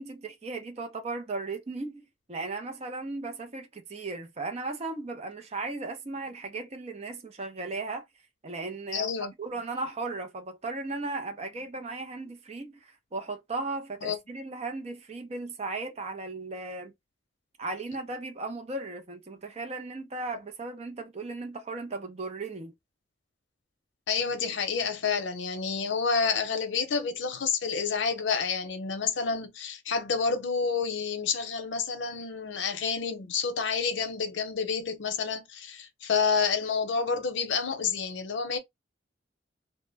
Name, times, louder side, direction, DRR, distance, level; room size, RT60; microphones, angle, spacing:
voice 1, 0.0-8.1 8.4-9.1 9.4-16.9 17.6-22.7, right 3 dB, 35° right, 0.5 m, -36 dB
voice 2, 8.9-9.3 14.0-14.2 24.1-38.6, left 5 dB, 80° left, 0.6 m, -29 dB
2.2 x 2.0 x 3.2 m
head